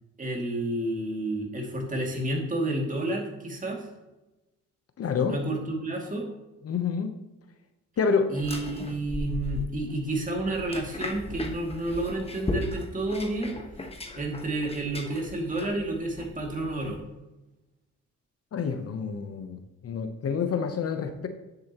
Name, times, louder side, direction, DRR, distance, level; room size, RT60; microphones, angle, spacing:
voice 1, 0.2-3.9 5.3-6.3 8.3-13.5 14.2-17.0, right 1 dB, 25° right, 1 dB, 2.4 m, -30 dB
voice 2, 5.0-5.4 6.6-7.1 8.0-8.3 18.5-21.3, left 6 dB, 50° left, 7 dB, 1.0 m, -28 dB
sound 1, 8.3-17.0, left 2 dB, 20° left, 1.3 m, -37 dB
9.8 x 7.9 x 3.0 m, 1.0 s
cardioid pair, 90°, 30 cm